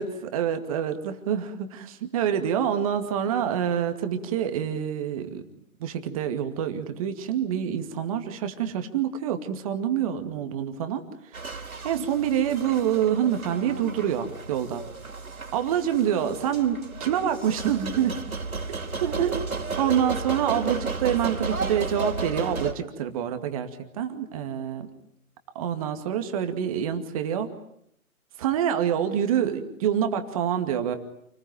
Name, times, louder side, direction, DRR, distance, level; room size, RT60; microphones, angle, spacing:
voice 1, 0.0-5.4 5.8-11.0 11.3-11.6 11.8-14.8 15.5-18.2 18.7-19.4 19.8-24.9 25.5-27.5 28.4-31.0, right 9 dB, 25° right, 7 dB, 2.3 m, -26 dB
sound 1, 11.3-22.7, right 4 dB, 75° right, 3.5 m, -33 dB
29.0 x 20.5 x 9.4 m, 0.73 s
figure-of-eight pair, 150°, 43 cm